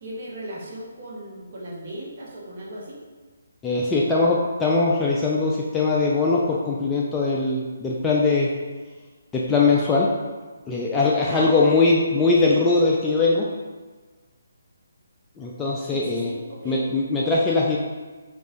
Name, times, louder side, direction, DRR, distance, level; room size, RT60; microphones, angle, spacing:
voice 1, 0.0-3.0 11.2-11.5 15.9-16.9, right 1 dB, 40° right, -5 dB, 1.1 m, -37 dB
voice 2, 3.6-8.5 9.3-10.1 10.7-13.5 15.4-16.3 16.6-17.8, left 3 dB, 10° left, -4 dB, 0.3 m, -21 dB
6.3 x 2.5 x 2.5 m, 1.3 s
figure-of-eight pair, 140°, 0 cm